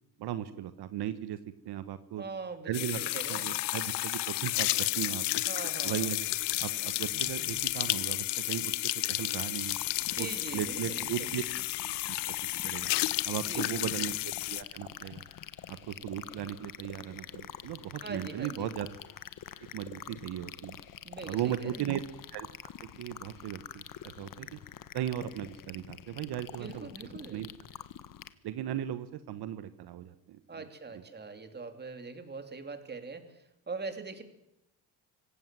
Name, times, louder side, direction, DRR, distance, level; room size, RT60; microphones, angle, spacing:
voice 1, 0.2-1.4 1.6-2.2 2.6-3.0 3.3-5.2 5.8-6.2 6.6-9.8 10.2-11.4 12.1-12.9 13.2-15.2 15.7-18.9 19.7-20.8 21.3-22.0 22.3-22.5 22.8-24.6 24.9-26.9 27.3-27.5 28.4-30.4, right 11 dB, 70° right, 12 dB, 1.3 m, -37 dB
voice 2, 2.2-3.5 5.5-6.1 10.0-11.3 13.3-14.1 18.0-18.7 21.0-21.9 26.6-27.4 30.5-34.2, right 4 dB, 25° right, 8 dB, 2.9 m, -42 dB
sound 1, 2.7-14.6, left 17 dB, 80° left, 0.9 m, -32 dB
sound 2, 9.6-28.3, left 10 dB, 55° left, 1.5 m, -46 dB
24.5 x 17.5 x 7.6 m, 0.86 s
cardioid pair, 120°, 41 cm